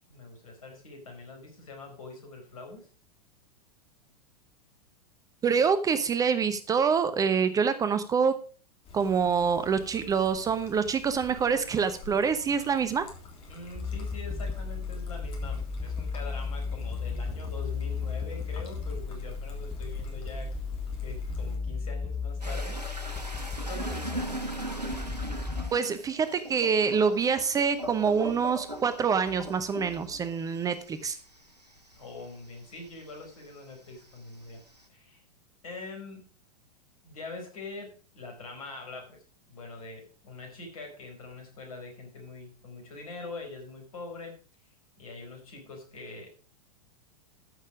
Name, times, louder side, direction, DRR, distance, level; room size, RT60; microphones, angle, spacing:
voice 1, 0.1-2.9 13.5-20.5 21.0-22.8 23.6-24.3 31.9-34.6 34.9-35.2 35.6-36.2 37.0-39.2 39.5-44.4 45.0-46.3, left 3 dB, 60° left, 3 dB, 4.9 m, -43 dB
voice 2, 5.4-8.3 8.9-13.0 25.7-31.2, right 6 dB, 15° right, 11 dB, 0.8 m, -26 dB
Trickle dribble, 8.8-21.6, left 2 dB, 30° left, 3.4 m, -47 dB
sound 1, 13.8-25.7, left 4 dB, 5° left, 1.8 m, -34 dB
sound 2, 22.4-33.3 33.7-34.8, right 1 dB, 90° right, 1.4 m, -39 dB
14.0 x 6.6 x 4.9 m, 0.38 s
figure-of-eight pair, 95°, 20 cm